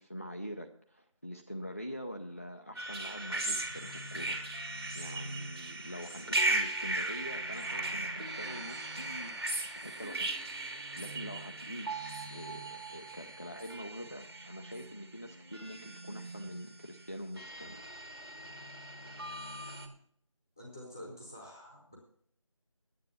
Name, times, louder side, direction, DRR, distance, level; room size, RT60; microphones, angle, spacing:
voice 1, 0.0-4.4 4.9-9.4 9.8-10.3 10.7-17.8, equal, 25° left, 3 dB, 0.5 m, -45 dB
sound 1, 2.8-19.9, right 2 dB, 45° right, 2.0 m, -38 dB
voice 2, 20.6-21.9, left 1 dB, 5° left, -3 dB, 0.9 m, -48 dB
10.0 x 9.2 x 6.8 m, 0.62 s
figure-of-eight pair, 170°, 17 cm